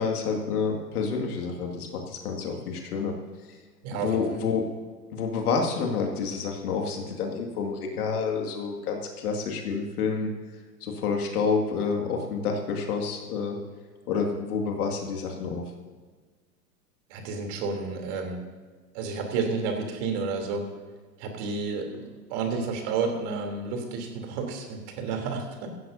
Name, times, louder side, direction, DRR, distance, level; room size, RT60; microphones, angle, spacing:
voice 1, 0.0-3.1 3.9-4.6 5.1-10.3 10.8-13.6 14.1-15.6, left 5 dB, 60° left, 2 dB, 2.3 m, -28 dB
voice 2, 3.8-4.2 17.1-18.4 18.9-20.6 21.2-25.7, right 4 dB, 40° right, 3 dB, 3.3 m, -31 dB
16.0 x 15.5 x 2.7 m, 1.5 s
hypercardioid pair, 110°, 50 cm